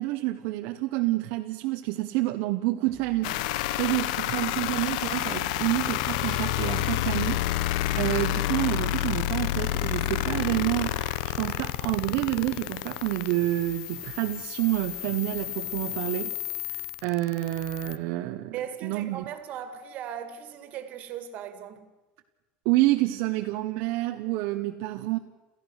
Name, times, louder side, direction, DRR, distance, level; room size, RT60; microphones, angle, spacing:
voice 1, 0.0-3.4 3.8-16.4 16.7-18.6 18.8-19.2 22.6-25.2, right 17 dB, 60° right, 0.9 m, -28 dB
sound 1, 2.8-16.1, left 2 dB, 10° left, 1.8 m, -52 dB
sound 2, 3.2-18.0, left 15 dB, 85° left, 0.7 m, -30 dB
voice 2, 18.5-21.9, right 9 dB, 40° right, 2.0 m, -38 dB
28.0 x 15.0 x 6.4 m
cardioid pair, 170°, 4 cm